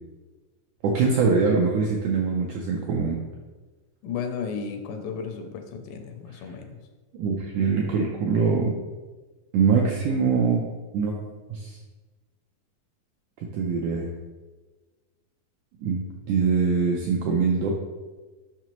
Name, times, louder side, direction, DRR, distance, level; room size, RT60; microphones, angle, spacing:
voice 1, 0.8-3.2 7.1-8.8 9.5-10.7 10.9-11.1 11.5-11.8 13.4-14.1 15.8-16.0 16.3-17.7, right 5 dB, 85° right, -1 dB, 1.7 m, -23 dB
voice 2, 4.0-6.8, left 6 dB, 80° left, 5 dB, 2.1 m, -34 dB
6.0 x 5.6 x 2.9 m, 1.3 s
omnidirectional pair, 4.1 m